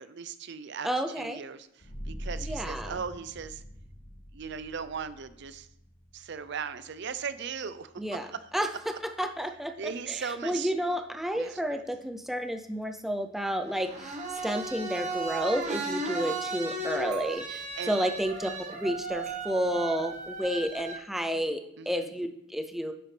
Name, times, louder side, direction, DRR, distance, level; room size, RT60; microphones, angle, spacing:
voice 1, 0.0-0.9 1.2-1.7 2.1-3.6 4.3-5.7 6.1-8.2 9.2-9.3 9.8-10.7 11.3-11.8 17.8-17.9 21.8-22.1, right 6 dB, 60° right, 13 dB, 0.5 m, -38 dB
voice 2, 0.8-1.4 2.4-3.0 8.0-8.3 8.5-8.7 9.2-14.2 14.4-22.9, equal, ahead, 5 dB, 0.5 m, -31 dB
sound 1, 1.8-13.1, equal, 85° left, 2.5 m, -46 dB
sound 2, 13.6-20.9, right 3 dB, 35° right, 1.1 m, -35 dB
10.0 x 7.3 x 3.3 m, 0.76 s
head